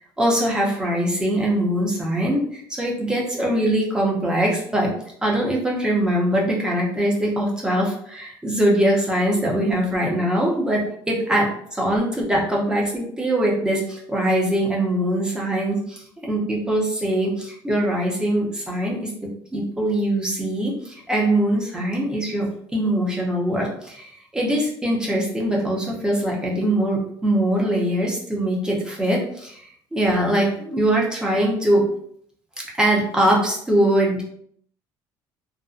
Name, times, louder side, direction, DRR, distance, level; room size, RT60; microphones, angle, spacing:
voice 1, 0.2-4.9 5.2-29.6 29.9-31.9 32.6-34.2, right 1 dB, 10° right, -2 dB, 0.6 m, -22 dB
2.5 x 2.1 x 2.4 m, 0.66 s
cardioid pair, 135°, 8 cm